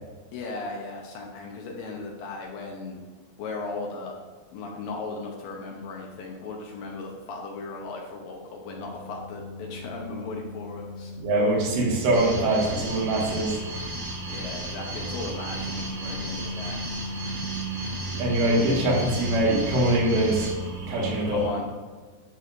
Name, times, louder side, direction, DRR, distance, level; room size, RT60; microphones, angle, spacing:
voice 1, 0.3-3.0 3.4-4.2 4.5-11.1 14.3-16.8 21.3-21.7, left 3 dB, 70° left, 0 dB, 2.4 m, -36 dB
sound 1, 8.6-21.3, right 1 dB, 40° left, 1.3 m, -37 dB
voice 2, 11.2-13.6 18.2-20.5 20.9-21.4, right 1 dB, 85° right, -4 dB, 4.1 m, -23 dB
sound 2, 12.1-21.5, right 1 dB, 60° right, 3.6 m, -36 dB
11.5 x 6.2 x 2.6 m, 1.4 s
omnidirectional pair, 4.8 m